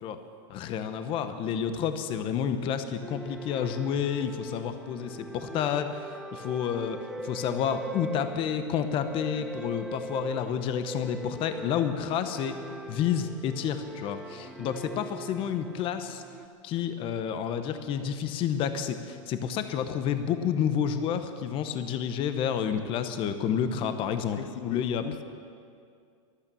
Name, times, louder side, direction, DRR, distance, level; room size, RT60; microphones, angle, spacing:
voice 1, 0.5-16.2 16.6-25.0, left 8 dB, 30° left, 9 dB, 1.0 m, -30 dB
sound 1, 3.0-16.5, right 2 dB, ahead, 0.4 m, -41 dB
voice 2, 24.3-25.2, left 10 dB, 70° left, 11 dB, 0.9 m, -38 dB
23.5 x 8.9 x 7.0 m, 2.3 s
supercardioid pair, 150°, 17 cm